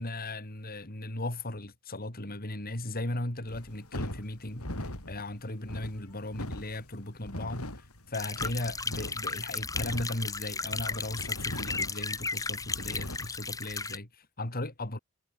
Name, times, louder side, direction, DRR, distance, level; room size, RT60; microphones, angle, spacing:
voice 1, 0.0-15.0, left 1 dB, 45° left, 3.9 m, -37 dB
sound 1, 3.5-13.4, left 1 dB, 85° left, 7.3 m, -41 dB
sound 2, 8.1-14.0, left 4 dB, 15° left, 3.2 m, -35 dB
head